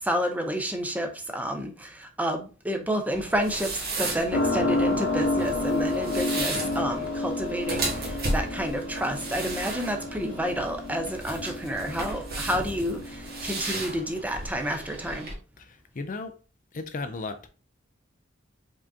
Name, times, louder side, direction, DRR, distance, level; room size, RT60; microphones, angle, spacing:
voice 1, 0.0-15.3, equal, 10° right, 0.6 m, -30 dB
sound 1, 3.1-15.3, right 2 dB, 50° right, 1.5 m, -35 dB
sound 2, 4.3-14.0, left 2 dB, 70° left, 1.1 m, -30 dB
voice 2, 15.6-16.4 16.7-17.5, left 3 dB, 40° left, 0.4 m, -35 dB
4.9 x 3.7 x 2.7 m
head